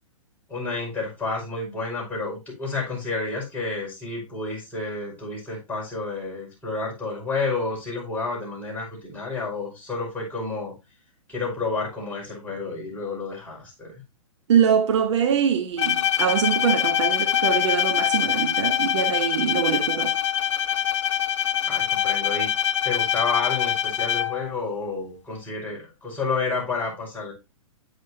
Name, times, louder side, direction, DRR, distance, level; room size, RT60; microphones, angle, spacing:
voice 1, 0.5-10.7 11.3-14.0 21.6-22.5 22.8-27.3, left 3 dB, 10° left, 5.4 m, -30 dB
voice 2, 14.5-20.1, right 8 dB, 55° right, 1.2 m, -23 dB
Bowed string instrument, 15.8-24.5, left 10 dB, 60° left, 0.5 m, -24 dB
8.8 x 7.9 x 2.8 m
figure-of-eight pair, 120°, 17 cm